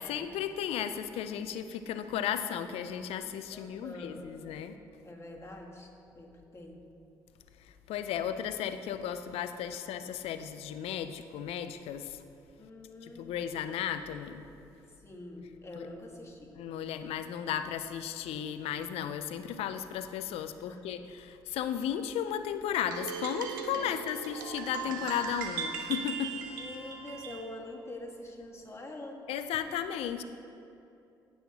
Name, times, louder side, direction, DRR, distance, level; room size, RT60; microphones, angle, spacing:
voice 1, 0.0-4.8 7.6-12.2 13.0-14.5 15.8-15.9 16.6-26.4 29.3-30.2, left 9 dB, 70° left, 10 dB, 0.5 m, -35 dB
voice 2, 3.5-4.3 5.0-6.9 12.6-13.4 15.0-16.6 20.6-20.8 23.7-24.2 24.8-25.0 25.6-25.8 26.5-29.3, left 1 dB, 25° left, -1 dB, 1.8 m, -46 dB
sound 1, 22.7-27.5, right 5 dB, 90° right, 0.5 m, -38 dB
16.0 x 5.6 x 3.0 m, 2.7 s
hypercardioid pair, 45°, 11 cm